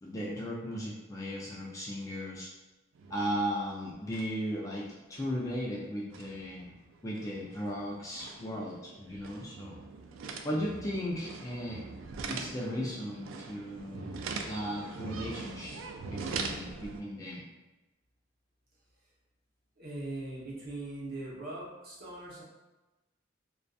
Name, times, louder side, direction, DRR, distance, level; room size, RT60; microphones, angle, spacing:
voice 1, 0.0-2.5 3.1-6.7 7.0-9.7 10.4-11.8 12.3-14.2 14.4-15.8 16.1-17.4, equal, 15° left, -5 dB, 0.3 m, -36 dB
sound 1, 3.0-3.7 3.9-4.5 4.9-17.0, right 4 dB, 90° right, 0.3 m, -42 dB
voice 2, 19.8-22.4, right 2 dB, 50° right, -7 dB, 0.8 m, -40 dB
2.5 x 2.3 x 2.3 m, 1.1 s
head